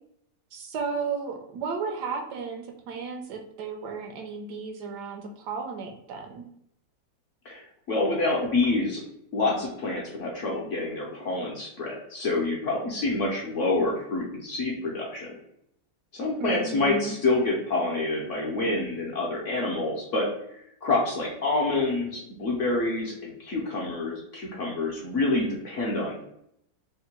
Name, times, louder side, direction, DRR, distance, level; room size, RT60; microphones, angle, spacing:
voice 1, 0.5-6.4 16.4-17.1, right 5 dB, 75° right, 4 dB, 1.1 m, -34 dB
voice 2, 7.9-9.0 9.3-15.3 16.1-20.3 20.8-26.2, left 2 dB, 60° left, -3 dB, 0.8 m, -27 dB
3.6 x 2.2 x 4.2 m, 0.75 s
omnidirectional pair, 2.0 m